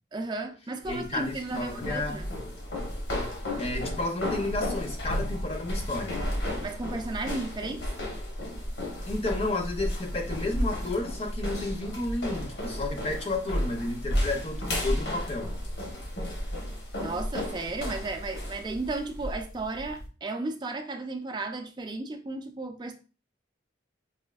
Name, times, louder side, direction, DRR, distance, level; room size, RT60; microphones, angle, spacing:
voice 1, 0.1-2.3 6.6-7.9 17.0-22.9, right 2 dB, 25° right, 0.4 m, -34 dB
sound 1, 0.8-20.1, equal, 80° left, 1.0 m, -33 dB
voice 2, 0.9-2.3 3.6-6.2 9.1-15.5, left 2 dB, 35° left, 0.5 m, -32 dB
4.9 x 2.6 x 2.3 m
head